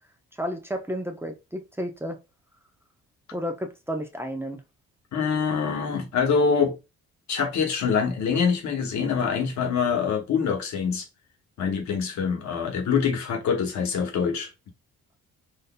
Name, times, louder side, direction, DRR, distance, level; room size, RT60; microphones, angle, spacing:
voice 1, 0.4-2.2 3.3-4.6, equal, 10° right, 0.6 m, -32 dB
voice 2, 5.1-6.8 7.3-11.1 11.6-14.5, left 6 dB, 70° left, 1.0 m, -25 dB
3.9 x 2.5 x 2.2 m
cardioid pair, 90°, 30 cm